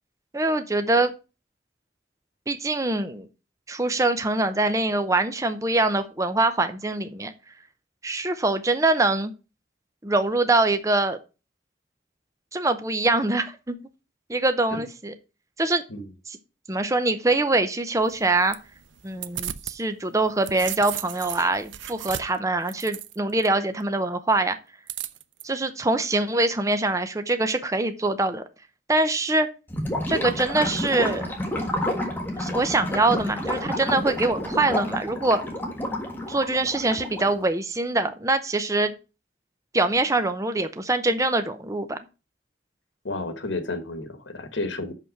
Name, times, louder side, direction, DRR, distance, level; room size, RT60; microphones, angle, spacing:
voice 1, 0.3-1.1 2.5-3.3 3.7-7.3 8.0-9.3 10.0-11.2 12.5-13.8 14.3-15.1 15.6-15.8 16.7-18.6 19.0-24.6 25.4-28.4 28.9-29.5 30.1-31.3 32.4-35.4 36.3-38.9 39.7-42.0, right 2 dB, 15° right, 9 dB, 0.6 m, -24 dB
sound 1, 18.0-19.8 20.2-23.5 24.9-25.4, right 12 dB, 80° right, 0.6 m, -35 dB
Gurgling / Liquid, 29.7-37.4, left 1 dB, 10° left, 1.5 m, -29 dB
voice 2, 43.0-44.9, left 2 dB, 75° left, 9 dB, 1.4 m, -31 dB
6.0 x 5.5 x 6.5 m, 0.31 s
head